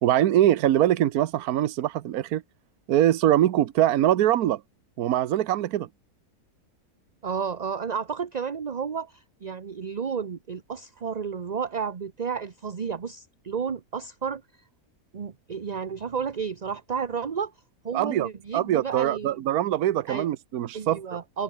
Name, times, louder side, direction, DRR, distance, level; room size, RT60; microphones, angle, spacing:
voice 1, 0.0-2.4 2.9-4.6 5.0-5.9 17.9-18.3 18.5-21.0, right 12 dB, 75° right, 1.3 m, -23 dB
voice 2, 7.2-14.6 15.1-17.5 17.8-19.4 20.1-20.3 20.7-21.4, right 6 dB, 35° right, 0.8 m, -32 dB
omnidirectional pair, 1.6 m